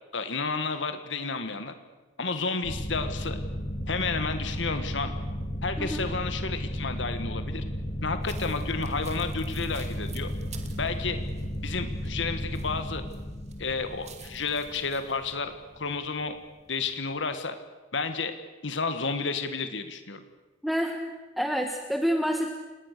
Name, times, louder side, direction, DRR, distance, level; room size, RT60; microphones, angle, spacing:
voice 1, 0.1-1.7 2.2-3.4 3.9-5.1 5.6-7.6 8.0-10.3 10.8-11.2 11.6-13.0 13.6-16.3 16.7-17.5 17.9-18.3 18.6-20.2, left 4 dB, 70° left, 9 dB, 1.5 m, -31 dB
sound 1, 2.6-15.9, equal, 35° left, 2.0 m, -34 dB
sound 2, 8.2-13.2 13.5-15.1, right 2 dB, 35° right, 2.4 m, -46 dB
voice 2, 20.6-22.5, equal, ahead, 4 dB, 1.2 m, -28 dB
29.5 x 19.0 x 6.7 m, 1.2 s
head